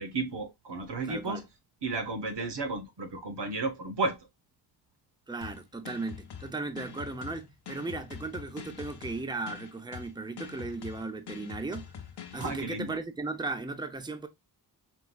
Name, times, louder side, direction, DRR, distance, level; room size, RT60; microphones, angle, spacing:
voice 1, 0.0-1.4 1.8-4.3 12.3-13.0, right 3 dB, 85° right, 1.1 m, -33 dB
voice 2, 1.0-1.4 5.3-11.9 12.3-14.3, right 3 dB, 10° right, 0.7 m, -36 dB
sound 1, 5.4-12.6, left 8 dB, 75° left, 0.8 m, -44 dB
4.7 x 3.7 x 2.3 m
wide cardioid pair, 100°, 40 cm